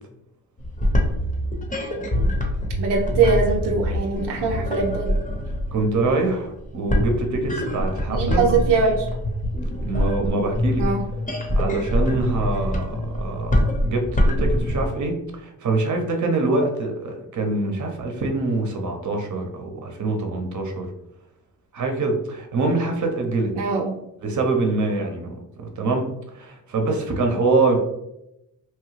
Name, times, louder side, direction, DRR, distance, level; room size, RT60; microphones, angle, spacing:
sound 1, 0.6-14.9, left 1 dB, 20° left, 0.8 m, -24 dB
voice 1, 2.8-5.1 8.1-9.1 10.8-11.0 17.4-17.5 23.5-23.9, right 4 dB, 80° right, 0 dB, 0.6 m, -22 dB
voice 2, 5.7-8.4 9.7-10.8 11.5-20.9 21.7-23.5 24.2-26.0 26.3-27.8, right 3 dB, 45° right, 3 dB, 0.8 m, -24 dB
3.0 x 2.3 x 3.1 m, 0.86 s
cardioid pair, 65°, 40 cm